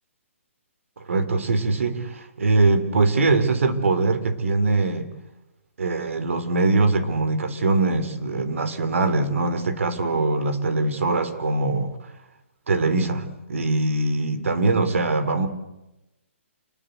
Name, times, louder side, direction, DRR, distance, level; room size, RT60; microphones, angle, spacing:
voice 1, 1.1-5.1 5.8-11.9 12.7-15.5, right 3 dB, 75° right, 11 dB, 3.6 m, -22 dB
28.0 x 20.0 x 8.2 m, 0.97 s
hypercardioid pair, 175°, 7 cm